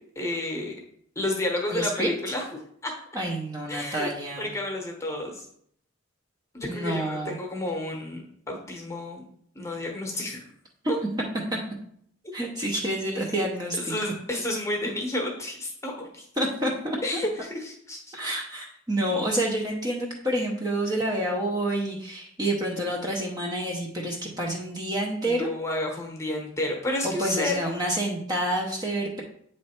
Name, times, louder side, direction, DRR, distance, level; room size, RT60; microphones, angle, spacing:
voice 1, 0.1-0.7 1.1-2.5 2.8-2.9 3.7-5.5 6.5-9.2 9.5-10.5 13.8-16.3 17.0-18.1 19.0-19.1 25.2-27.6, left 1 dB, 15° left, 1 dB, 1.0 m, -31 dB
voice 2, 1.7-2.1 3.1-4.5 6.7-7.4 11.5-11.6 12.3-13.9 16.4-17.0 18.1-25.5 27.0-29.2, right 1 dB, 20° right, -1 dB, 0.7 m, -28 dB
8.5 x 3.2 x 4.4 m, 0.67 s
head